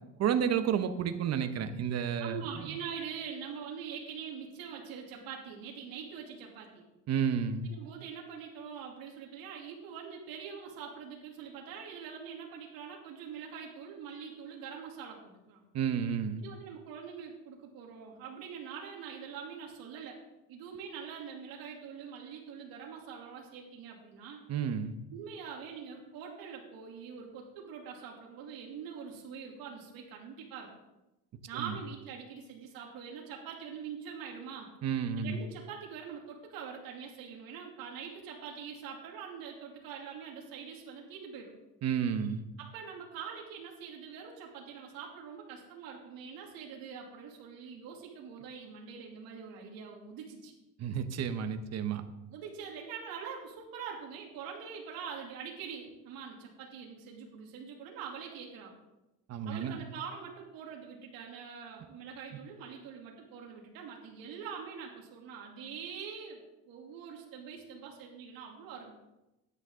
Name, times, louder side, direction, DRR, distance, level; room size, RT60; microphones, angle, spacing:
voice 1, 0.2-2.4 7.1-7.7 15.7-16.4 24.5-24.9 31.5-31.7 34.8-35.4 41.8-42.4 50.8-52.0 59.3-59.8, right 8 dB, 40° right, 9 dB, 1.1 m, -31 dB
voice 2, 2.2-6.8 7.6-15.6 16.4-20.2 20.5-24.4 25.1-30.7 31.5-34.7 35.2-41.5 42.6-50.5 52.3-58.7 59.4-68.9, right 7 dB, 65° right, -1 dB, 2.8 m, -44 dB
13.0 x 9.5 x 3.8 m, 0.96 s
cardioid pair, 125°, 38 cm